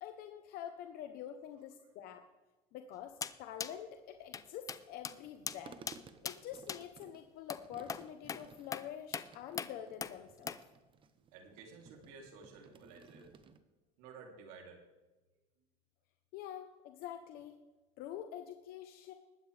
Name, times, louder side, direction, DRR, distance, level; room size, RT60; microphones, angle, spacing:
voice 1, 0.0-2.2 2.7-5.8 6.2-10.5 16.3-17.6 18.0-19.1, left 10 dB, 55° left, 6 dB, 0.9 m, -46 dB
sound 1, 3.2-3.3 3.6-3.7 4.3-4.4 4.7-4.8 5.0-5.1 5.5-5.6 5.9-6.0 6.2-6.4 6.7-6.8 7.5-7.6 7.9-8.0 8.3-8.4 8.7-8.8 9.1-9.3 9.6-9.7 10.0-10.1 10.5-10.6, left 6 dB, 20° left, 0.5 m, -39 dB
sound 2, 5.2-13.6, right 5 dB, 30° right, 0.8 m, -58 dB
voice 2, 11.2-13.3 14.0-14.8, right 4 dB, 85° right, 1 dB, 3.2 m, -54 dB
20.5 x 8.7 x 3.4 m, 1.2 s
cardioid pair, 135°, 18 cm